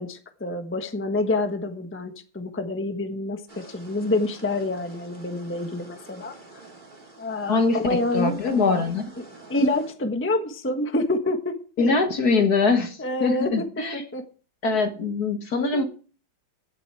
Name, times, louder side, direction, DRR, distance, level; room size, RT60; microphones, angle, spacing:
voice 1, 0.0-6.3 7.2-8.4 9.5-11.9 13.0-13.5 13.9-14.2 15.7-15.8, left 2 dB, 5° left, 6 dB, 1.1 m, -27 dB
sound 1, 3.5-9.9, right 2 dB, 20° right, 3.4 m, -48 dB
voice 2, 7.5-9.1 11.8-14.0 14.6-15.8, left 4 dB, 50° left, 7 dB, 1.7 m, -23 dB
16.5 x 8.1 x 4.8 m, 0.39 s
omnidirectional pair, 2.3 m